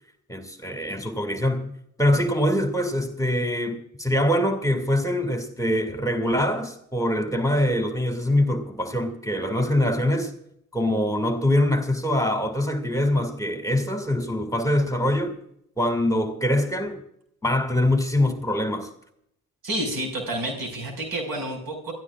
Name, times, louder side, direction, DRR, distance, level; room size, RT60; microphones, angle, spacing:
voice 1, 0.3-1.7 2.0-10.3 10.7-15.4 15.8-17.0 17.4-18.9, left 1 dB, 10° left, 2.3 m, -24 dB
voice 2, 19.6-21.9, right 1 dB, 65° right, 5.4 m, -29 dB
26.5 x 13.5 x 2.4 m
hypercardioid pair, 40°, 38 cm